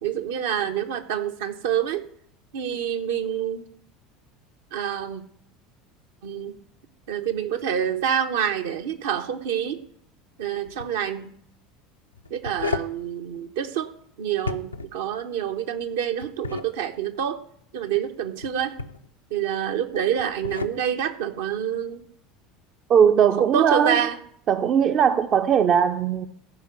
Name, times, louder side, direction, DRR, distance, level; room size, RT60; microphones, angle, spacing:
voice 1, 0.0-2.0 2.5-3.7 4.7-5.2 6.2-6.6 7.1-9.8 10.4-11.3 12.3-13.9 14.2-17.4 17.7-18.7 19.3-22.0 23.4-24.2, right 9 dB, 65° right, 1.0 m, -27 dB
sound 1, 10.6-10.9 12.1-13.0 14.4-15.0 16.2-16.7 18.4-19.1 20.2-20.8, left 4 dB, 90° left, 0.6 m, -32 dB
voice 2, 22.9-24.0 24.5-26.3, right 8 dB, 40° right, 0.6 m, -19 dB
14.5 x 5.1 x 7.6 m
figure-of-eight pair, 75°, 0 cm